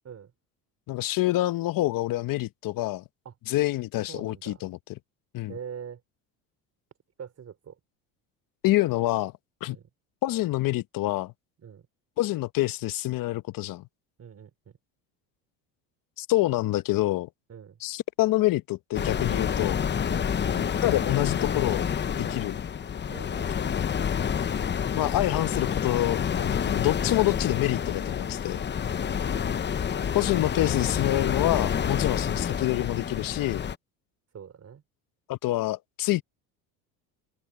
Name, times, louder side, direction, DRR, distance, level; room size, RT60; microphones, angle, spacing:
voice 1, 0.9-3.0 3.5-4.8 5.3-5.5 8.6-9.3 9.6-9.8 10.2-11.3 12.2-13.8 16.2-17.3 17.8-19.8 20.8-21.9 22.2-22.6 25.0-28.6 30.1-33.7 35.3-36.2, left 17 dB, 55° left, 1.1 m, -27 dB
voice 2, 4.1-4.6 5.5-6.0 7.2-7.8 9.6-9.9 11.6-11.8 14.2-14.7 17.5-17.8 20.1-20.4 23.1-23.9 29.0-29.6 34.3-34.8, right 7 dB, 40° right, 5.2 m, -44 dB
sound 1, 18.9-33.8, left 7 dB, 25° left, 0.9 m, -28 dB
supercardioid pair, 95°, 41 cm